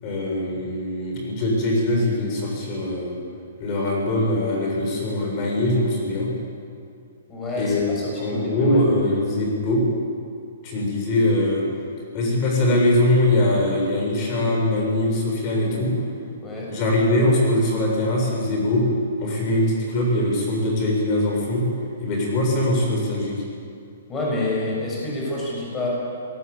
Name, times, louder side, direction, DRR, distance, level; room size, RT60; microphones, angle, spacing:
voice 1, 0.0-3.2 3.6-6.3 7.6-9.8 10.6-11.7 12.1-15.9 16.7-18.9 19.2-21.7 22.0-23.4, left 1 dB, 30° left, -1 dB, 7.1 m, -22 dB
voice 2, 7.3-7.7 8.3-8.8 16.4-16.7 24.1-25.9, left 2 dB, 15° left, -4 dB, 7.2 m, -27 dB
22.5 x 19.5 x 8.6 m, 2.6 s
hypercardioid pair, 165°, 0 cm